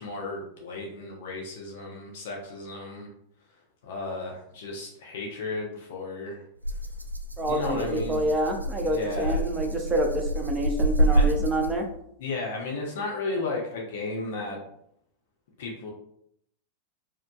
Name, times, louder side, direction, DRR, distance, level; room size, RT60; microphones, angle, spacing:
voice 1, 0.0-3.1 3.8-6.4 7.4-8.3 8.8-9.4 11.1-11.3 12.2-14.6 15.6-15.9, left 3 dB, 55° left, -1 dB, 0.7 m, -34 dB
Rattle (instrument), 6.6-12.0, right 1 dB, 85° right, 0.3 m, -27 dB
voice 2, 7.4-11.9, right 1 dB, 15° right, 3 dB, 0.6 m, -27 dB
4.5 x 2.4 x 2.3 m, 0.71 s
figure-of-eight pair, 90°, 0 cm